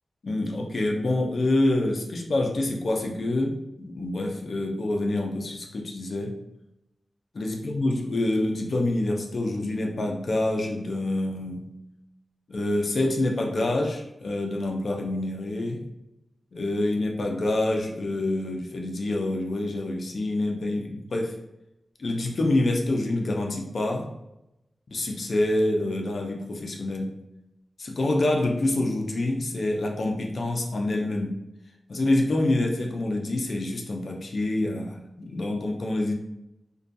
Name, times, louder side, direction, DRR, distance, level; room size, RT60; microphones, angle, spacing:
voice 1, 0.2-6.3 7.3-11.7 12.5-15.9 16.5-21.4 22.0-24.1 24.9-27.2 27.8-31.4 31.9-36.1, left 2 dB, 55° left, 1 dB, 0.4 m, -26 dB
2.4 x 2.2 x 2.6 m, 0.88 s
wide cardioid pair, 105°, 0 cm